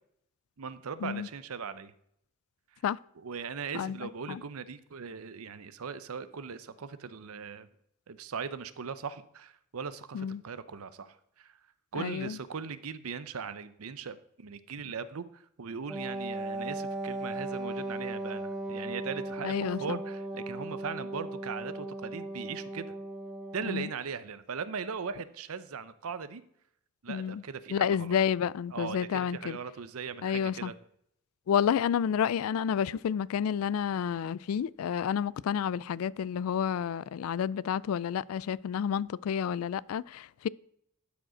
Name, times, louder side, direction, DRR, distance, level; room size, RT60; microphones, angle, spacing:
voice 1, 0.6-1.9 3.2-7.7 8.1-11.6 11.9-23.0 23.5-26.4 27.0-28.2 28.7-30.7, right 6 dB, 80° right, 0.6 m, -39 dB
voice 2, 11.9-12.4 19.4-20.0 23.7-23.9 27.1-27.4 27.7-29.6 30.2-30.7 31.5-40.5, left 8 dB, 75° left, 0.3 m, -30 dB
Wind instrument woodwind instrument, 15.9-24.0, right 2 dB, ahead, 0.8 m, -37 dB
11.5 x 5.1 x 5.0 m
head